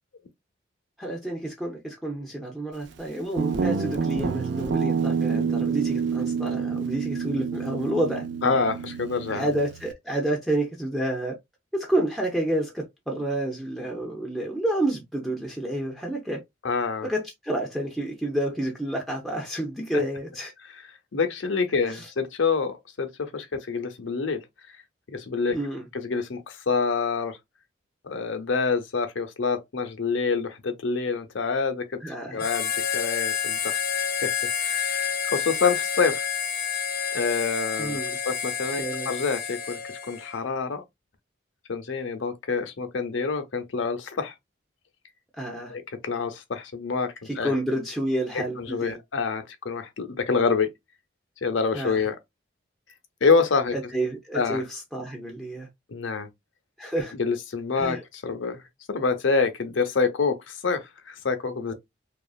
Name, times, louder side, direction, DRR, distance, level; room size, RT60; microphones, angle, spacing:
voice 1, 1.0-8.3 9.3-11.4 11.7-16.4 17.0-20.5 21.8-22.1 25.5-25.9 32.0-32.5 37.8-38.2 38.8-39.1 45.3-45.8 47.2-49.0 51.7-52.1 53.7-55.7 56.8-57.1 57.8-58.0, right 1 dB, ahead, 0.5 m, -29 dB
Guitar, 3.4-9.9, right 5 dB, 70° right, 0.4 m, -28 dB
voice 2, 8.4-9.5 16.6-17.1 21.1-24.4 25.1-25.6 25.9-27.4 28.0-32.0 32.3-34.3 34.6-36.2 37.1-40.8 41.7-44.3 45.7-47.5 48.3-50.7 51.4-52.2 53.2-53.8 54.3-54.6 55.9-56.3 57.2-58.6 58.9-61.7, left 4 dB, 90° left, 0.6 m, -27 dB
Harmonica, 32.4-40.4, left 7 dB, 50° left, 0.5 m, -29 dB
2.9 x 2.4 x 2.3 m
head